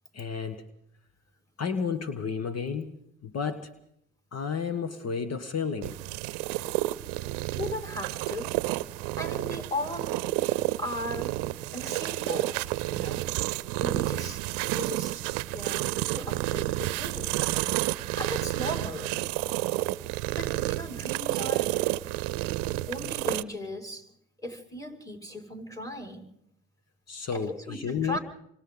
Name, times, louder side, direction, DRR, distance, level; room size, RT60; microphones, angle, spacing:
voice 1, 0.1-0.6 1.6-3.0 3.2-3.7 4.3-6.0 27.1-28.2, left 6 dB, 45° left, 10 dB, 1.7 m, -31 dB
sound 1, 5.8-23.4, right 19 dB, 70° right, 0.8 m, -30 dB
voice 2, 7.6-8.6 9.2-10.2 10.8-11.4 11.7-12.7 12.9-13.3 13.8-14.5 14.7-15.2 15.5-17.4 18.2-19.2 20.3-21.7 22.9-24.1 24.4-26.3 27.3-28.2, left 1 dB, 10° left, 3 dB, 6.0 m, -37 dB
27.5 x 25.5 x 4.0 m, 0.74 s
hypercardioid pair, 60°, 36 cm